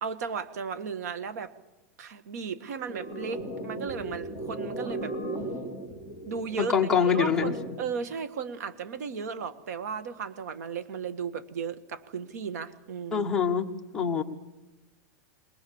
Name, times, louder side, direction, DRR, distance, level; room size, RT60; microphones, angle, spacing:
voice 1, 0.0-1.5 2.0-5.1 6.2-13.3, right 6 dB, 90° right, 12 dB, 1.7 m, -35 dB
sound 1, 2.9-7.9, right 1 dB, 25° right, 2.9 m, -37 dB
voice 2, 6.6-7.5 13.1-13.7 13.9-14.2, left 7 dB, 5° left, 0 dB, 1.2 m, -24 dB
21.5 x 21.0 x 7.2 m, 1.0 s
supercardioid pair, 175°, 9 cm